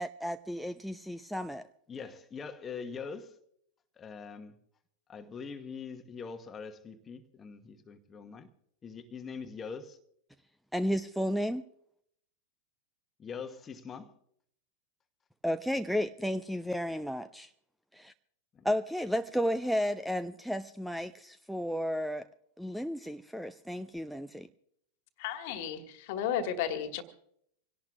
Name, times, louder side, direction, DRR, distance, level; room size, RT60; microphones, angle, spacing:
voice 1, 0.0-1.7 10.7-11.7 15.4-17.5 17.9-18.1 18.6-22.3 22.6-24.5, equal, ahead, 0.5 m, -33 dB
voice 2, 1.9-3.4 4.0-4.5 5.1-8.5 8.8-10.0 13.2-14.1 18.5-18.7, left 5 dB, 20° left, 1.2 m, -43 dB
voice 3, 25.2-27.0, left 9 dB, 50° left, 1.7 m, -33 dB
26.0 x 17.5 x 2.4 m
figure-of-eight pair, 90°, 0 cm